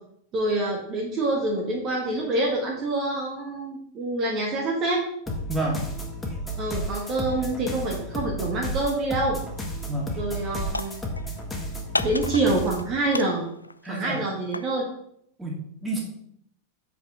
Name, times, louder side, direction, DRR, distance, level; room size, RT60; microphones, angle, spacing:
voice 1, 0.3-5.0 6.6-9.4 10.2-10.9 12.0-13.4 13.9-14.8, right 2 dB, 35° right, -2 dB, 1.6 m, -26 dB
sound 1, 5.3-12.9, equal, 10° left, 1.6 m, -32 dB
voice 2, 5.5-5.8 9.9-10.2 13.8-14.2 15.4-16.0, right 2 dB, 10° right, -2 dB, 2.4 m, -29 dB
sound 2, 9.6-9.9 10.2-11.4 11.9-12.8 13.1-14.8, left 2 dB, 85° left, 0.4 m, -33 dB
7.6 x 5.2 x 4.9 m, 0.69 s
figure-of-eight pair, 90°, 0 cm